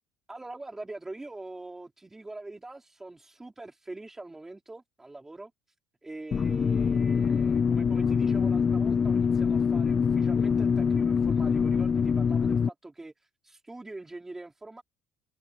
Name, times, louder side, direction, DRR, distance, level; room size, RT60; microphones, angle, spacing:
voice 1, 0.3-5.5 6.0-13.1 13.4-14.8, right 2 dB, 10° right, 4.6 m, -43 dB
sound 1, 6.3-12.7, left 6 dB, 20° left, 0.4 m, -24 dB
cardioid pair, 175°, 5 cm